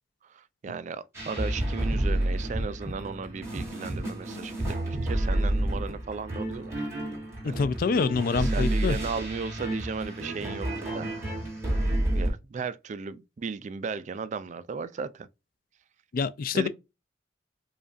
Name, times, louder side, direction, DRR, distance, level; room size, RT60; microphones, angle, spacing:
voice 1, 0.3-6.9 7.5-7.7 8.3-11.1 12.1-15.3 16.5-16.7, right 5 dB, 40° right, 0.3 m, -36 dB
sound 1, 1.1-12.3, right 1 dB, 15° right, 1.8 m, -30 dB
voice 2, 7.4-9.0 16.1-16.7, left 5 dB, 50° left, 0.4 m, -26 dB
5.1 x 2.3 x 2.5 m
head